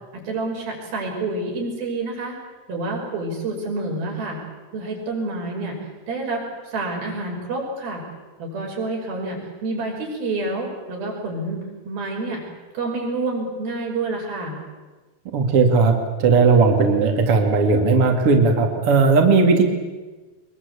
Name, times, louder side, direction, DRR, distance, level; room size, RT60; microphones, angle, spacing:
voice 1, 0.1-2.3 2.7-4.4 4.7-5.8 6.1-8.0 8.4-11.6 11.9-12.4 12.7-14.6, right 2 dB, 80° right, -1 dB, 7.5 m, -28 dB
voice 2, 15.3-15.9 16.2-19.6, right 4 dB, 45° right, 3 dB, 2.8 m, -16 dB
23.0 x 22.0 x 8.4 m, 1.2 s
omnidirectional pair, 4.2 m